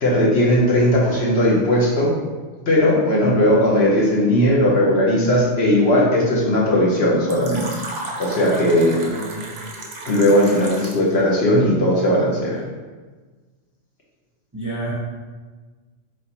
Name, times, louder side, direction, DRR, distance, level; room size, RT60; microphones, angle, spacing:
voice 1, 0.0-2.1 2.7-7.7 8.2-9.0 10.1-12.6, left 1 dB, 55° left, -4 dB, 1.0 m, -17 dB
voice 2, 3.6-4.0 9.1-9.5 14.5-14.9, right 1 dB, 20° right, -6 dB, 0.5 m, -30 dB
Fill (with liquid), 7.3-11.1, right 2 dB, 60° right, 0.8 m, -33 dB
3.8 x 3.7 x 2.9 m, 1.3 s
omnidirectional pair, 1.4 m